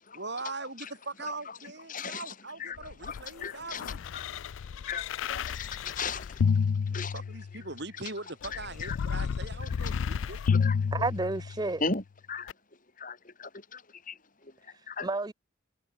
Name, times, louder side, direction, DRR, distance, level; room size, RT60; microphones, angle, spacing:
voice 1, 0.1-4.0 6.9-10.5, right 3 dB, 55° right, 5.6 m, -41 dB
voice 2, 1.2-7.2 8.5-9.0 9.6-9.9 10.4-10.9 11.8-12.5 13.0-15.1, left 4 dB, 40° left, 3.3 m, -38 dB
sound 1, 2.8-7.7 8.4-11.7 12.5-12.6, left 6 dB, 70° left, 0.4 m, -31 dB
voice 3, 10.9-11.8 14.7-15.3, right 3 dB, 20° right, 0.5 m, -31 dB
head